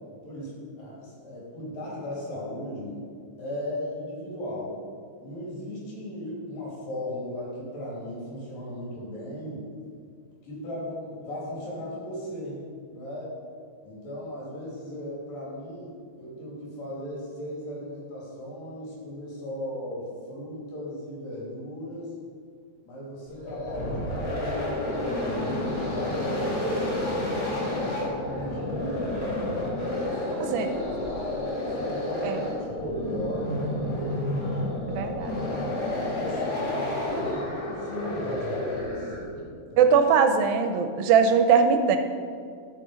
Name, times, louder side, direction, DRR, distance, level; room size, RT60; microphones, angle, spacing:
voice 1, 0.2-3.1 3.4-4.8 5.2-9.7 10.4-12.6 12.9-13.4 13.8-15.9 16.2-22.1 22.9-26.9 27.4-29.1 29.9-32.4 32.7-34.3 34.9-35.3 35.7-40.0, equal, 65° left, -5 dB, 4.4 m, -36 dB
sound 1, 23.3-39.4, left 1 dB, 35° left, 1.9 m, -30 dB
voice 2, 30.4-30.7 32.2-32.4 34.9-35.3 39.8-42.0, right 6 dB, 80° right, 7 dB, 2.3 m, -21 dB
12.5 x 5.9 x 5.1 m, 2.2 s
omnidirectional pair, 4.2 m